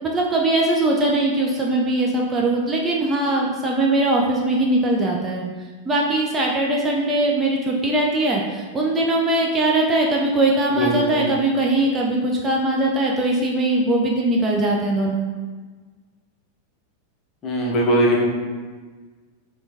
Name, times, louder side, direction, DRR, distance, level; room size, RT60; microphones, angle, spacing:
voice 1, 0.0-5.4 5.9-15.2, right 2 dB, 20° right, -2 dB, 0.4 m, -21 dB
voice 2, 10.7-11.2 17.4-18.3, equal, 30° left, -2 dB, 0.7 m, -20 dB
4.3 x 2.3 x 2.6 m, 1.4 s
figure-of-eight pair, 90°, 0 cm